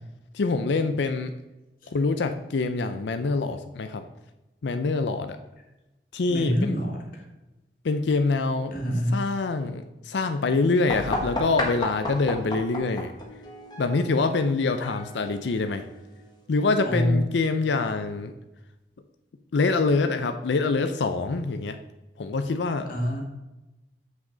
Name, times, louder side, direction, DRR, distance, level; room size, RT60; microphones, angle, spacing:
voice 1, 0.3-1.4 1.9-4.1 4.6-5.4 6.1-6.8 7.8-8.7 9.1-13.1 13.8-15.8 16.5-18.3 19.5-21.8 22.2-22.9, left 3 dB, 80° left, 9 dB, 0.5 m, -25 dB
voice 2, 6.3-7.2 8.7-9.2 16.8-17.2 22.9-23.2, equal, 50° left, 0 dB, 1.9 m, -26 dB
sound 1, 10.9-16.4, left 1 dB, 25° left, 1.2 m, -34 dB
7.6 x 6.0 x 3.9 m, 1.0 s
head